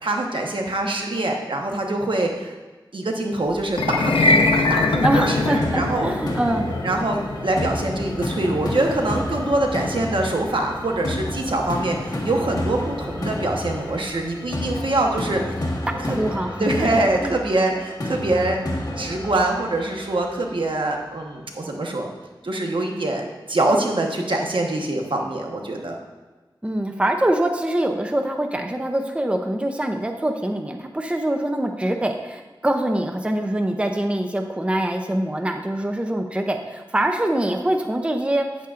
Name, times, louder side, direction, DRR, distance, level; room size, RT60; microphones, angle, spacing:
voice 1, 0.0-2.5 2.9-6.2 6.8-15.5 16.0-16.2 16.6-18.6 19.0-22.1 22.4-26.0, right 2 dB, 70° right, 1 dB, 1.1 m, -24 dB
sound 1, 3.7-14.0, left 2 dB, 90° left, 0.6 m, -25 dB
voice 2, 5.0-6.7 16.1-17.3 26.6-38.5, right 1 dB, 15° right, 4 dB, 0.6 m, -24 dB
sound 2, 5.6-20.6, left 1 dB, 45° left, 1.4 m, -30 dB
8.8 x 8.4 x 2.5 m, 1.2 s
wide cardioid pair, 70°, 9 cm